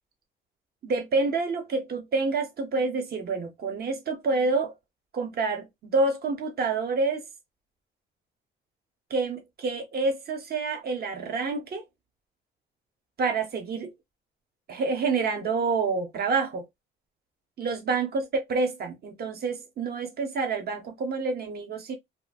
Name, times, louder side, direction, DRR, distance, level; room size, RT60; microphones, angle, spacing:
voice 1, 0.8-4.7 5.1-5.7 5.9-7.2 9.1-11.8 13.2-13.9 14.7-16.6 17.6-21.9, right 3 dB, 50° right, 1.0 m, -28 dB
2.9 x 2.7 x 2.3 m
cardioid pair, 90°, 20 cm